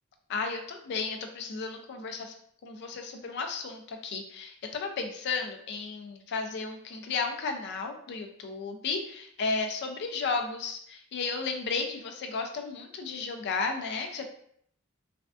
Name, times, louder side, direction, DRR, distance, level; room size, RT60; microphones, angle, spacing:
voice 1, 0.3-2.3 2.6-14.3, left 4 dB, 55° left, 4 dB, 0.4 m, -33 dB
3.3 x 2.4 x 2.3 m, 0.66 s
head